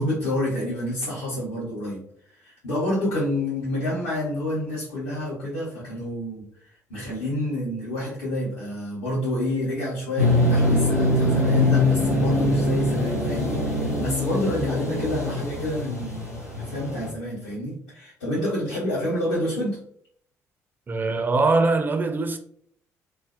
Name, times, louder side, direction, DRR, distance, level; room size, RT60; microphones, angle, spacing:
voice 1, 0.0-2.0 2.3-19.8, left 1 dB, 65° left, 0.8 m, -28 dB
sound 1, 10.2-17.1, left 1 dB, 90° left, 0.4 m, -23 dB
voice 2, 20.9-22.4, right 3 dB, 25° right, 0.3 m, -22 dB
2.5 x 2.0 x 2.4 m
figure-of-eight pair, 45°, 8 cm